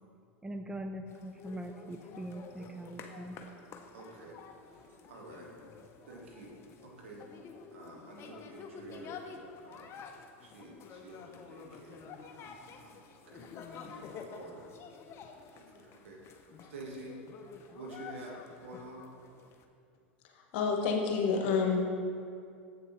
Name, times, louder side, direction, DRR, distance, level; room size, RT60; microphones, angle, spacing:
voice 1, 0.4-3.4, right 1 dB, 10° right, 6 dB, 0.4 m, -42 dB
sound 1, 1.1-19.6, left 5 dB, 40° left, 0.6 m, -50 dB
voice 2, 3.9-4.4 4.6-5.5 6.0-6.5 6.8-7.2 7.7-9.2 9.6-9.9 10.4-12.0 12.3-12.4 12.7-14.7 15.5-16.4 16.7-17.2 17.7-19.1, right 2 dB, 80° right, -2 dB, 1.5 m, -49 dB
voice 3, 20.5-21.8, left 5 dB, 65° left, 2 dB, 1.1 m, -28 dB
7.7 x 6.8 x 3.1 m, 2.4 s
hypercardioid pair, 95°, 7 cm